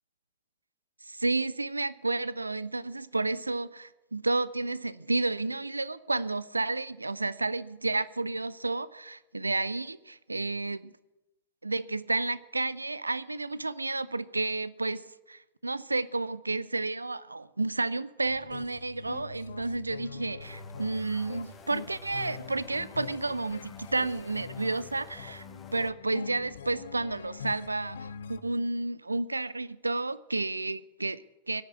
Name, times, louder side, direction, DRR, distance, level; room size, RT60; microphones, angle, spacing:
voice 1, 1.0-10.9 11.6-25.5 25.7-31.6, right 3 dB, 80° right, 0.5 m, -31 dB
sound 1, 18.3-28.4, left 6 dB, 65° left, 0.6 m, -44 dB
sound 2, 20.4-25.9, left 6 dB, 20° left, 0.7 m, -52 dB
16.0 x 8.0 x 8.3 m
figure-of-eight pair, 90°, 0 cm